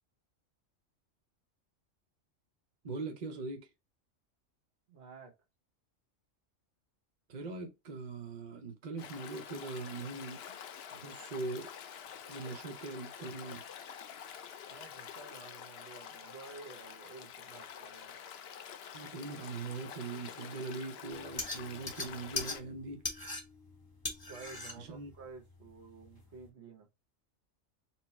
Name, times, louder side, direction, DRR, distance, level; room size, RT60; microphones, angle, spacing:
voice 1, 2.8-3.7 7.3-10.4 10.9-11.7 12.3-13.6 18.9-23.0 24.8-25.1, right 3 dB, 45° right, 0.7 m, -41 dB
voice 2, 4.9-5.4 14.7-18.1 24.3-26.9, right 4 dB, 60° right, 1.3 m, -51 dB
Stream, 9.0-22.6, left 8 dB, 60° left, 0.7 m, -48 dB
sound 1, 21.2-26.5, left 3 dB, 20° left, 0.8 m, -41 dB
4.5 x 2.0 x 4.2 m
omnidirectional pair, 1.3 m